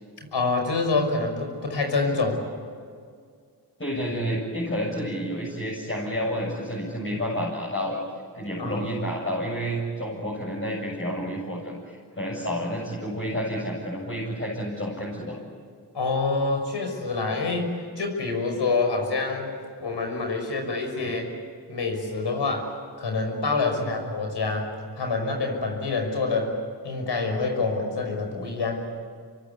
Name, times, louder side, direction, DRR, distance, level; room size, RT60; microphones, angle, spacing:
voice 1, 0.3-2.4 8.6-8.9 15.9-21.3 21.7-22.7 23.0-26.6 26.8-28.8, left 3 dB, 80° left, 4 dB, 6.0 m, -27 dB
voice 2, 3.8-8.0 8.3-15.4 21.0-21.1 23.8-24.0, equal, 30° left, -3 dB, 7.7 m, -30 dB
26.5 x 24.0 x 8.6 m, 2.1 s
cardioid pair, 45°, 41 cm